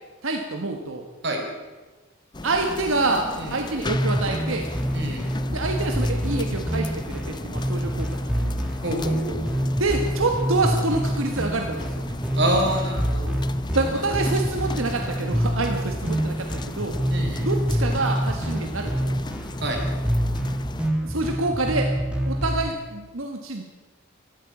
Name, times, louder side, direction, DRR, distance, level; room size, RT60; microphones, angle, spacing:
voice 1, 0.2-1.1 2.4-4.7 5.5-8.5 9.8-12.2 13.7-17.0 17.4-19.2 21.0-21.9 22.3-23.6, right 2 dB, 75° right, 3 dB, 1.4 m, -27 dB
sound 1, 2.3-20.9, left 2 dB, 20° left, 0.5 m, -37 dB
sound 2, 3.9-22.7, equal, 5° right, 2.0 m, -26 dB
voice 2, 4.9-5.2 8.8-9.4 12.4-13.3 13.9-14.0 17.1-17.4 19.6-19.8, right 1 dB, 55° right, 2 dB, 3.7 m, -26 dB
14.0 x 13.5 x 7.2 m, 1.2 s
head